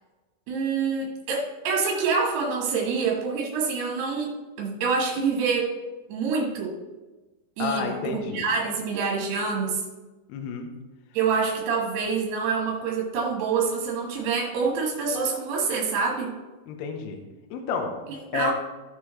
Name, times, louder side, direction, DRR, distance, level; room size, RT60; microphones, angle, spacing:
voice 1, 0.5-4.3 4.6-5.7 6.1-6.8 7.6-9.8 11.1-16.3 18.3-18.5, right 5 dB, 65° right, -2 dB, 3.3 m, -26 dB
voice 2, 7.6-8.4 10.3-10.7 16.7-17.2 17.5-17.9 18.3-18.5, left 5 dB, 75° left, 4 dB, 2.6 m, -30 dB
15.5 x 6.9 x 3.2 m, 1.2 s
omnidirectional pair, 5.5 m